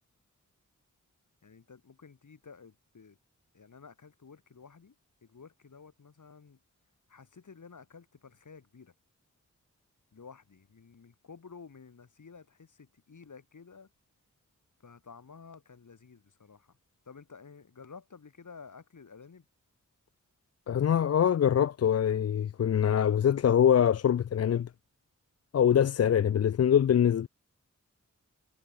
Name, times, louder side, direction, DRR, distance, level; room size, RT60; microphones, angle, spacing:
voice 1, 1.4-3.2 3.5-4.9 5.2-6.6 7.1-8.9 10.1-13.9 14.8-16.7 17.1-19.5, left 5 dB, 75° left, 3.8 m, -52 dB
voice 2, 20.7-24.7 25.5-27.3, left 9 dB, 55° left, 0.4 m, -24 dB
wide cardioid pair, 75°, 31 cm